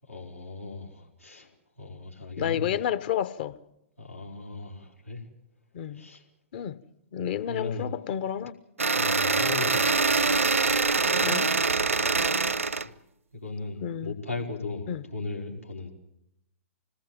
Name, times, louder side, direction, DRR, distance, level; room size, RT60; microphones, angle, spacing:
voice 1, 0.0-2.8 4.0-5.2 5.9-6.2 7.5-7.9 8.9-10.2 13.3-15.9, left 3 dB, 90° left, 4.8 m, -37 dB
voice 2, 2.4-3.6 5.7-6.1 6.5-6.8 7.1-8.6 11.2-11.5 13.8-14.1 14.9-15.0, left 10 dB, 45° left, 1.0 m, -30 dB
sound 1, 8.8-12.9, right 4 dB, 80° right, 0.8 m, -24 dB
26.0 x 20.0 x 7.7 m
figure-of-eight pair, 110°, 7 cm